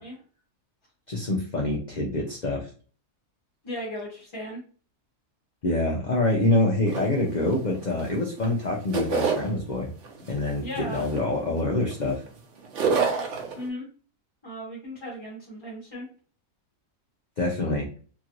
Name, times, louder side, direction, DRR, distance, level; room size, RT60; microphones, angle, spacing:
voice 1, 1.1-2.7 5.6-9.9 10.3-12.2 17.4-17.9, left 2 dB, 60° left, -1 dB, 0.4 m, -26 dB
voice 2, 3.6-4.6 10.6-11.0 13.5-13.8 14.4-16.1, equal, 25° left, -5 dB, 0.7 m, -36 dB
sound 1, 6.9-8.1 8.4-9.5 10.0-10.4 10.9-12.3 12.6-13.6, right 5 dB, 65° right, 1.0 m, -27 dB
2.9 x 2.5 x 2.9 m, 0.40 s
omnidirectional pair, 1.4 m